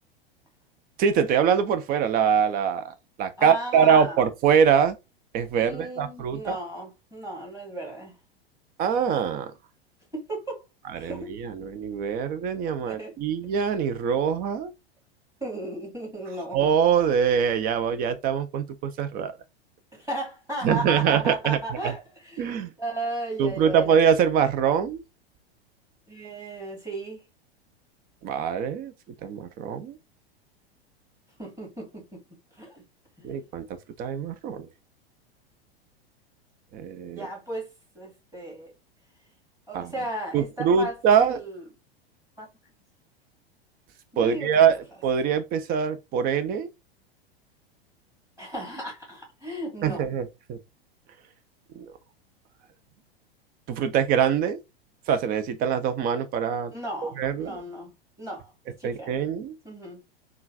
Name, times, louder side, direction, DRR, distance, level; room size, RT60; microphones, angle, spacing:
voice 1, 1.0-5.0 5.3-6.6 8.8-9.5 11.0-14.7 16.5-19.3 20.6-21.6 21.8-21.9 22.4-22.7 23.4-25.0 28.2-28.9 29.2-30.0 33.2-33.7 34.0-34.7 36.7-37.3 39.7-39.9 40.3-41.4 44.2-46.7 49.8-50.6 51.8-51.9 53.7-54.6 55.1-56.7 57.2-57.6 58.8-59.6, right 7 dB, 30° right, 0.5 m, -23 dB
voice 2, 3.4-4.3 5.5-8.2 10.1-10.6 10.9-11.4 12.8-13.1 15.4-16.7 19.9-23.9 26.1-27.2 31.4-32.2 32.5-32.8 33.2-33.4 37.1-38.7 39.7-41.6 42.4-42.5 44.1-44.6 48.4-50.0 56.7-57.9 58.2-58.5 58.8-59.2 59.6-60.0, right 1 dB, 10° right, 1.8 m, -35 dB
3.7 x 2.4 x 2.6 m
figure-of-eight pair, 90°, 31 cm